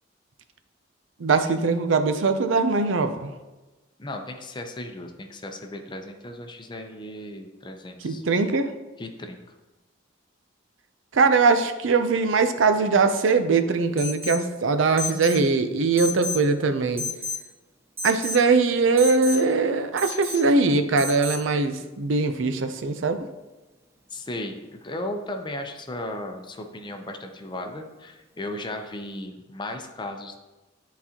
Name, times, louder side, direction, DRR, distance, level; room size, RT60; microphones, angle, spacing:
voice 1, 1.2-3.3 8.0-8.7 11.1-17.0 18.0-23.2, right 4 dB, 90° right, 9 dB, 0.5 m, -21 dB
voice 2, 4.0-8.2 9.0-9.4 24.1-30.4, left 1 dB, 25° left, 4 dB, 0.6 m, -36 dB
Alarm, 14.0-14.5 15.0-15.4 16.0-16.5 17.0-17.4 18.0-18.4 19.0-19.4 20.0-20.4 21.0-21.4, left 1 dB, 15° right, 0.6 m, -32 dB
11.0 x 4.0 x 2.9 m, 1.1 s
head